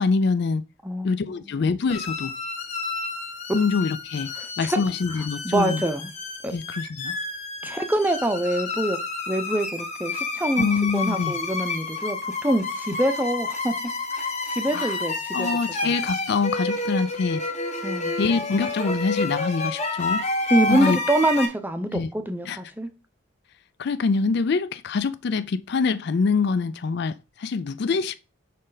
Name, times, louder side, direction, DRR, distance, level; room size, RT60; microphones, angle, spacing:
voice 1, 0.0-0.6 1.0-2.3 3.5-5.8 6.5-7.2 10.6-11.3 14.7-14.9 15.3-17.4 18.2-20.2 20.7-21.0 21.9-22.1 22.5-22.6 23.8-28.1, left 4 dB, 50° left, 0.4 m, -25 dB
voice 2, 0.8-1.6 4.4-4.8 5.4-6.1 6.4-6.5 7.6-9.0 9.3-10.7 10.9-13.7 14.1-15.5 15.8-15.9 17.8-18.1 20.5-22.9, right 1 dB, 10° right, 0.6 m, -25 dB
sound 1, 1.9-21.5, left 3 dB, 30° left, 1.1 m, -30 dB
6.5 x 5.0 x 3.9 m
head